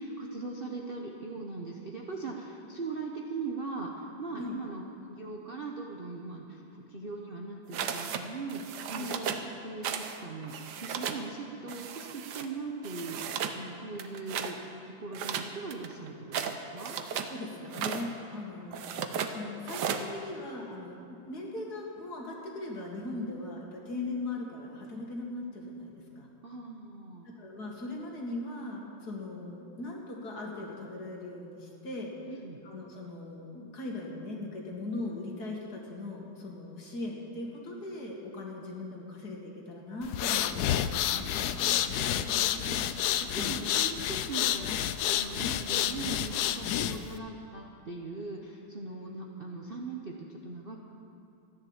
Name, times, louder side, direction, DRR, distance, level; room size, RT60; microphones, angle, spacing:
voice 1, 0.0-9.3 9.6-14.6 14.8-17.0 26.4-27.3 32.3-32.6 41.4-50.8, right 3 dB, 40° right, 0 dB, 0.8 m, -40 dB
sound 1, 7.7-8.2 8.5-9.5 9.8-10.2 10.4-11.2 11.7-12.5 12.8-13.6 14.0-14.5 15.1-17.3 17.7-18.1 18.7-19.3 19.7-20.1, right 7 dB, 65° right, 1.3 m, -35 dB
voice 2, 17.3-18.9 19.3-26.3 27.4-32.1 32.6-41.3 43.3-43.6 46.8-47.0, left 2 dB, 55° left, -1 dB, 2.5 m, -39 dB
sound 2, 40.0-47.2, left 11 dB, 75° left, 0.9 m, -29 dB
14.5 x 10.5 x 7.2 m, 2.7 s
omnidirectional pair, 2.1 m